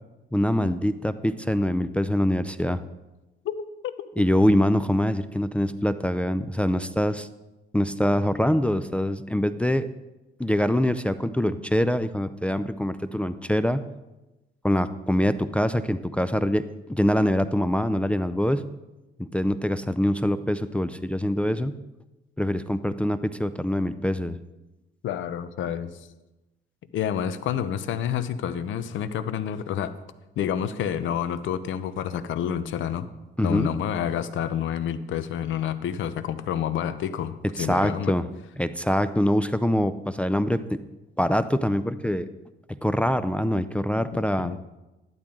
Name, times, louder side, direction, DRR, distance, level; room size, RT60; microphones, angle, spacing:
voice 1, 0.3-2.8 4.2-7.3 7.7-9.9 10.4-13.8 14.6-18.6 19.2-21.8 22.4-24.4 33.4-33.7 37.6-38.2 38.6-40.8 41.2-42.3 42.7-44.6, left 1 dB, 5° left, 11 dB, 0.4 m, -24 dB
voice 2, 25.0-25.9 26.9-29.9 30.4-33.1 33.4-38.1 44.4-44.6, left 9 dB, 75° left, 13 dB, 0.7 m, -29 dB
12.0 x 10.5 x 3.8 m, 1.0 s
cardioid pair, 90°, 20 cm